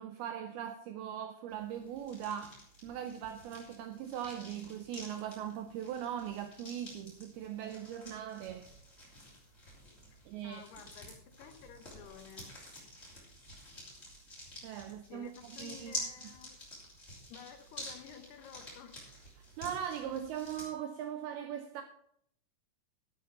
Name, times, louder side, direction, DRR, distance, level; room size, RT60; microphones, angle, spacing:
voice 1, 0.0-2.6 2.8-8.7 10.3-10.6 14.6-16.0 19.6-21.8, right 9 dB, 85° right, 2.2 m, -40 dB
sound 1, 1.5-20.7, equal, 15° left, 4.4 m, -49 dB
voice 2, 10.1-12.5 14.9-16.6 17.3-19.0, left 8 dB, 75° left, 2.8 m, -53 dB
12.0 x 8.5 x 5.2 m
omnidirectional pair, 5.2 m